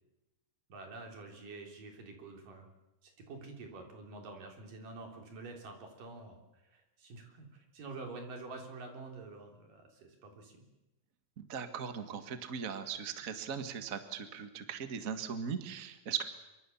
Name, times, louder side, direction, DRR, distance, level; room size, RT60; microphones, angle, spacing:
voice 1, 0.7-2.7 3.0-10.6, right 3 dB, 70° right, 3 dB, 5.1 m, -48 dB
voice 2, 11.4-16.2, right 7 dB, 50° right, 9 dB, 1.0 m, -39 dB
25.0 x 24.0 x 7.1 m, 0.99 s
omnidirectional pair, 4.0 m